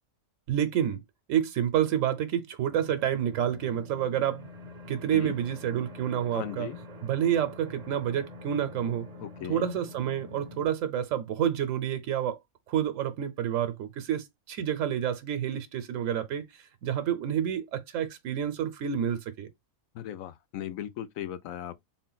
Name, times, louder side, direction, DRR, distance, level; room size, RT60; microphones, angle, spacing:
voice 1, 0.5-1.0 1.3-4.5 4.9-6.7 7.0-9.0 9.5-12.4 12.7-16.5 16.8-19.5, right 10 dB, 75° right, 1.0 m, -29 dB
sound 1, 2.7-10.7, left 1 dB, 40° right, 0.6 m, -46 dB
voice 2, 6.3-6.8 9.2-9.7 19.9-21.8, left 11 dB, 85° left, 1.0 m, -37 dB
3.8 x 2.1 x 3.9 m
omnidirectional pair, 1.4 m